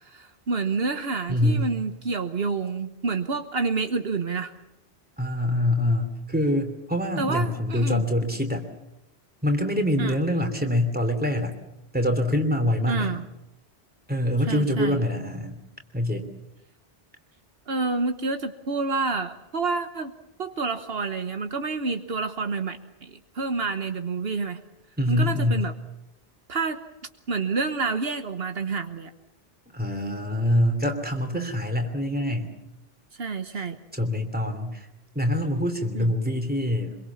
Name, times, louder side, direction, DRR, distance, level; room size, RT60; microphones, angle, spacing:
voice 1, 0.0-4.5 7.2-8.0 10.0-10.2 12.9-13.3 14.5-15.1 17.7-20.1 20.4-24.6 25.1-25.7 26.5-26.8 27.3-29.1 31.3-31.6 33.2-33.8 35.9-36.1, right 4 dB, 70° right, 7 dB, 1.4 m, -28 dB
voice 2, 1.3-1.7 5.2-8.6 9.4-11.5 11.9-13.1 14.1-15.6 15.9-16.3 25.0-25.7 29.7-32.5 34.0-34.9 35.1-37.0, left 1 dB, 10° right, 5 dB, 2.9 m, -25 dB
25.0 x 23.0 x 7.2 m, 0.90 s
omnidirectional pair, 1.0 m